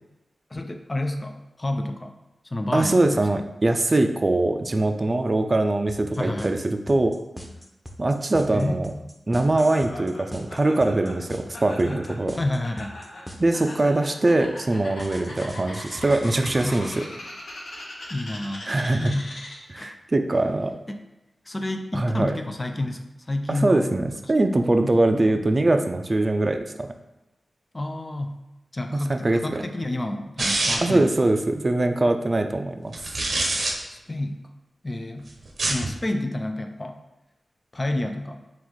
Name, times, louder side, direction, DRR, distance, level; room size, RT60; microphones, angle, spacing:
voice 1, 0.5-2.2 2.5-3.2 6.2-6.6 8.5-9.0 12.3-13.0 16.6-17.1 18.1-19.3 19.7-20.0 20.9-21.0 21.5-23.9 27.7-28.4 28.7-31.1 33.9-34.4 34.8-35.3 35.7-37.0 37.7-38.4, left 1 dB, 30° left, 5 dB, 0.4 m, -29 dB
voice 2, 2.7-7.2 8.0-8.9 9.3-12.4 13.4-17.0 18.7-19.1 19.7-20.8 21.9-22.3 23.5-26.9 28.9-29.6 30.8-32.9, right 2 dB, 40° right, 6 dB, 0.4 m, -22 dB
sound 1, 5.9-13.9 15.0-16.9, equal, 5° right, 0.8 m, -40 dB
Laughter, 9.6-19.8, left 1 dB, 85° left, 0.9 m, -40 dB
sound 2, 30.4-31.0 32.9-33.7 35.5-35.9, right 2 dB, 70° right, 0.7 m, -25 dB
3.9 x 2.4 x 4.6 m, 0.95 s
cardioid pair, 45°, 0 cm